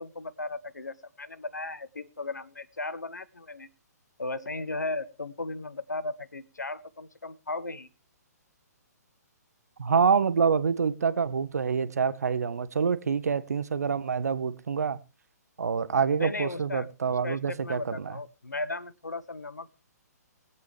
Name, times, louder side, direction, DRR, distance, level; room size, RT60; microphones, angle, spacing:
voice 1, 0.0-3.7 4.2-7.9 16.2-19.7, left 2 dB, 85° left, 0.9 m, -36 dB
voice 2, 9.8-15.0 15.6-18.1, right 6 dB, 65° right, 0.9 m, -26 dB
22.5 x 8.2 x 3.3 m
figure-of-eight pair, 125°, 9 cm